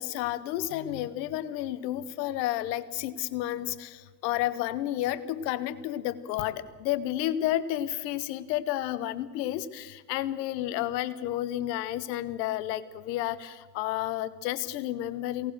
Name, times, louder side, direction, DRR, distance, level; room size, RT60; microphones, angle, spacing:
voice 1, 0.0-4.0 4.2-15.5, left 13 dB, 85° left, 16 dB, 0.9 m, -31 dB
22.5 x 18.0 x 6.4 m, 1.3 s
hypercardioid pair, 45°, 49 cm